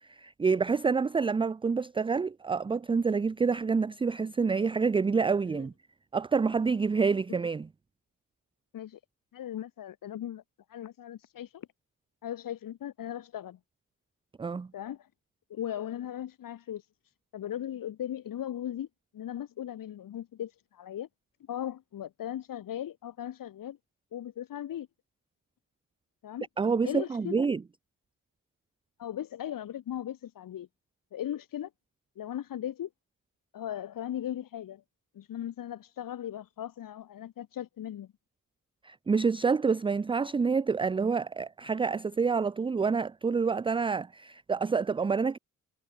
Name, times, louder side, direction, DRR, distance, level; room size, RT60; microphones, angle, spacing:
voice 1, 0.1-5.7 6.1-7.7 14.4-14.7 26.6-27.6 38.8-45.4, right 5 dB, 15° right, 0.4 m, -27 dB
voice 2, 9.3-10.4 10.7-11.7 12.2-13.6 14.7-15.1 15.5-16.9 17.3-18.9 19.1-21.1 21.5-23.8 24.1-24.9 26.2-26.5 26.8-27.5 29.0-30.7 31.1-31.7 32.2-32.9 33.5-34.8 35.1-38.1, left 11 dB, 75° left, 2.3 m, -38 dB
cardioid pair, 110°, 33 cm